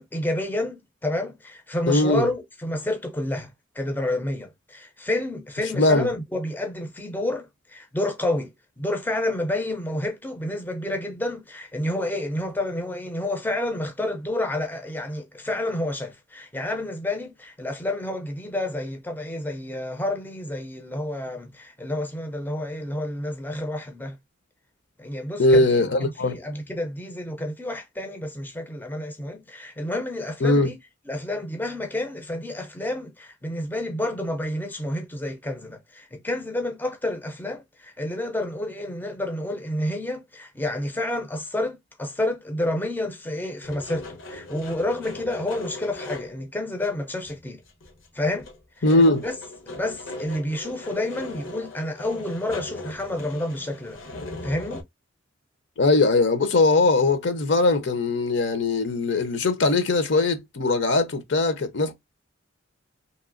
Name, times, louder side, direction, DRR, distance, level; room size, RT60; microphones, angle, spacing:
voice 1, 0.0-3.5 3.7-24.2 25.0-30.8 31.1-47.6 48.1-48.5 48.8-48.9 49.2-49.3 49.7-54.0 54.4-54.8, left 1 dB, 10° left, 0.5 m, -29 dB
voice 2, 1.9-2.3 5.7-6.1 25.4-26.4 30.4-30.7 48.8-49.2 55.8-61.9, left 2 dB, 60° left, 0.7 m, -20 dB
sound 1, 43.6-46.4 46.8-46.9 47.2-48.1 48.3-54.8, left 2 dB, 80° left, 1.0 m, -39 dB
2.9 x 2.8 x 2.5 m
head